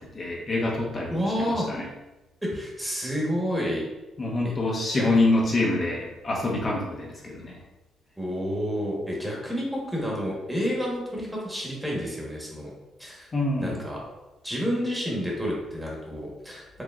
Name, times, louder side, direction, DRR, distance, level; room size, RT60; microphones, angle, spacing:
voice 1, 0.1-1.9 4.2-7.6 13.3-13.8, left 2 dB, 40° left, -3 dB, 0.8 m, -26 dB
voice 2, 1.1-1.7 2.4-3.8 4.4-4.5 4.9-5.1 8.2-12.7 13.0-13.3 13.6-14.0 14.4-16.8, equal, 10° right, -3 dB, 1.2 m, -29 dB
4.7 x 2.9 x 2.4 m, 1.1 s
cardioid pair, 90°, 0 cm